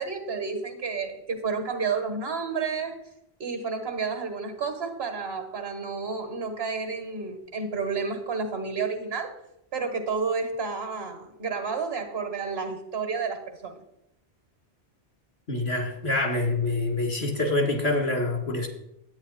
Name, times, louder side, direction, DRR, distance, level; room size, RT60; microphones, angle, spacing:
voice 1, 0.0-3.0 3.4-9.4 9.7-13.8, right 5 dB, 75° right, 6 dB, 1.7 m, -31 dB
voice 2, 15.5-18.7, left 2 dB, 90° left, 2 dB, 2.4 m, -26 dB
10.5 x 9.0 x 4.1 m, 0.82 s
omnidirectional pair, 1.1 m